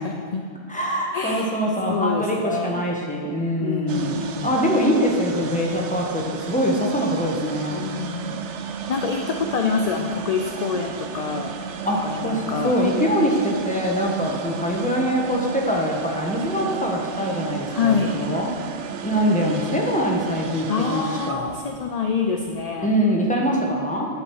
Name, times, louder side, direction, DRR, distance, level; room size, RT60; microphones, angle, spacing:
voice 1, 0.0-0.5 1.1-1.6 1.9-2.8 3.6-4.5 7.7-8.4 8.9-11.5 12.0-12.8 17.7-18.2 20.7-22.9, left 5 dB, 50° left, 3 dB, 0.5 m, -26 dB
voice 2, 0.7-4.2 4.4-7.8 11.8-18.5 19.0-21.5 22.8-24.1, equal, 5° left, -2 dB, 1.4 m, -23 dB
sound 1, 3.9-23.0, right 7 dB, 85° right, 0.9 m, -34 dB
10.0 x 5.4 x 6.4 m, 2.2 s
omnidirectional pair, 1.2 m